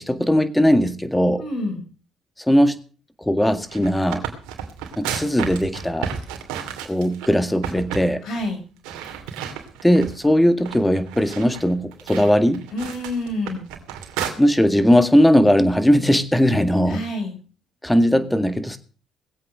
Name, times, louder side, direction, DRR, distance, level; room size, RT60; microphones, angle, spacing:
voice 1, 0.0-1.4 2.5-2.8 3.2-4.2 5.0-6.1 6.8-8.2 9.8-12.7 14.4-17.0 17.8-18.8, equal, 10° left, 11 dB, 1.9 m, -18 dB
voice 2, 1.4-1.8 8.2-8.6 12.7-13.7 16.9-17.4, left 1 dB, 65° left, 3 dB, 6.9 m, -28 dB
sound 1, 3.5-7.3 7.6-8.1 8.3-8.5 8.8-10.3 10.6-14.3, right 8 dB, 85° right, 2.5 m, -32 dB
19.0 x 8.2 x 6.3 m, 0.39 s
supercardioid pair, 75°, 0 cm